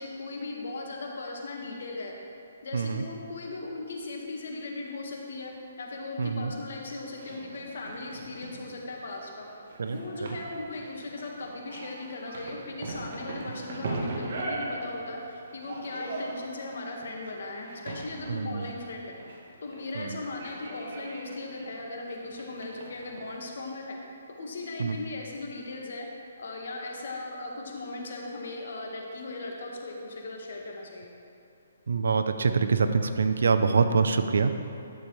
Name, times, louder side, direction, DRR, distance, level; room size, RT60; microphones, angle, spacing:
voice 1, 0.0-2.1 2.6-5.5 5.8-9.5 9.8-19.1 19.6-24.0 24.4-26.1 26.4-31.1, left 2 dB, 65° left, 0 dB, 1.6 m, -38 dB
voice 2, 2.7-3.0 6.2-6.5 9.8-10.0 18.3-18.7 19.9-20.2 24.8-25.0 31.9-34.5, right 5 dB, 75° right, 8 dB, 0.6 m, -25 dB
sound 1, 7.0-23.4, right 2 dB, 50° right, 1.3 m, -40 dB
12.0 x 6.8 x 3.2 m, 2.6 s
hypercardioid pair, 160°, 0 cm